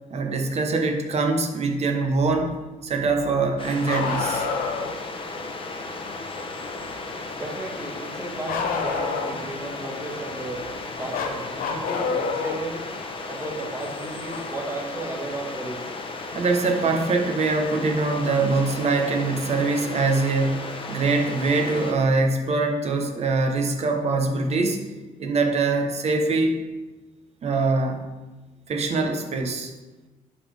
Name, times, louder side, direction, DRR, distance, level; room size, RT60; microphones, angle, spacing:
voice 1, 0.1-2.5 2.8-4.4 16.3-24.8 25.2-26.6 27.4-28.0 28.7-29.7, right 3 dB, 45° right, 4 dB, 1.1 m, -23 dB
sound 1, 3.6-21.9, left 3 dB, 35° left, 0.9 m, -35 dB
Bark, 3.8-4.9 8.5-9.5 11.1-12.6 14.3-14.4 16.3-16.4 17.5-17.6, left 5 dB, 70° left, 0.9 m, -27 dB
voice 2, 7.3-10.7 11.0-12.9 13.3-15.9, right 2 dB, 15° right, -2 dB, 1.9 m, -34 dB
11.0 x 4.1 x 3.5 m, 1.2 s
cardioid pair, 105°, 15 cm